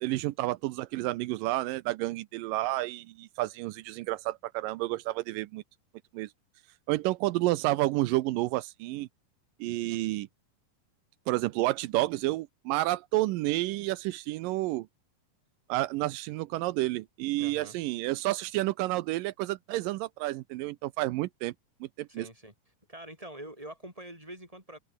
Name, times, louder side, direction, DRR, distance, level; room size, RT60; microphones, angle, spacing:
voice 1, 0.0-5.6 6.1-6.3 6.9-9.1 9.6-10.3 11.3-14.9 15.7-21.5 21.8-22.3, right 18 dB, 85° right, 2.4 m, -30 dB
voice 2, 17.4-17.8 22.1-22.5 22.9-24.8, right 1 dB, 10° right, 8.0 m, -45 dB
omnidirectional pair, 3.9 m